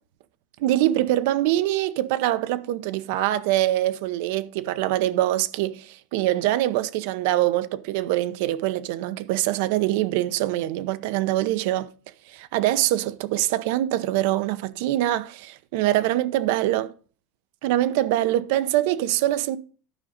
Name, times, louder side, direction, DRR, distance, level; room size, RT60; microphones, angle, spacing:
voice 1, 0.6-11.9 12.3-16.9 17.6-19.6, right 14 dB, 65° right, 0.8 m, -24 dB
12.0 x 5.3 x 5.1 m
supercardioid pair, 145°, 0 cm